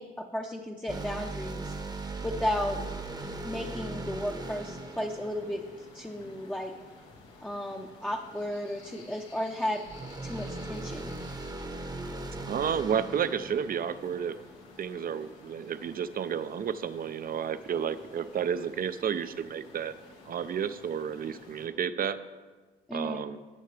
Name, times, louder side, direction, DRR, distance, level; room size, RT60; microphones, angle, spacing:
voice 1, 0.0-1.7 2.2-2.8 3.4-5.6 5.9-6.7 7.4-9.8 10.2-11.2 22.9-23.3, left 1 dB, 5° left, 1 dB, 0.7 m, -34 dB
sound 1, 0.9-6.4 9.9-14.6, right 2 dB, 20° right, 0.9 m, -39 dB
sound 2, 2.8-21.7, left 3 dB, 90° left, 1.8 m, -53 dB
voice 2, 12.5-14.4 14.8-19.9 20.3-22.2 22.9-23.4, right 8 dB, 45° right, 12 dB, 0.6 m, -31 dB
17.0 x 6.5 x 3.3 m, 1.3 s
cardioid pair, 90°, 20 cm